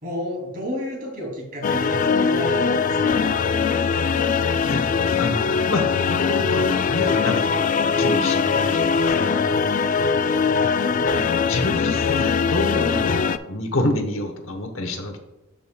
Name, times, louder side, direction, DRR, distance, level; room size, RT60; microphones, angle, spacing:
voice 1, 0.0-4.3 10.5-10.7, left 1 dB, 45° right, -2 dB, 2.8 m, -31 dB
sound 1, 1.6-13.4, left 5 dB, 40° left, 0.3 m, -21 dB
voice 2, 5.2-9.4 11.1-15.2, left 1 dB, 65° left, 5 dB, 1.1 m, -28 dB
13.0 x 5.2 x 2.3 m, 0.98 s
head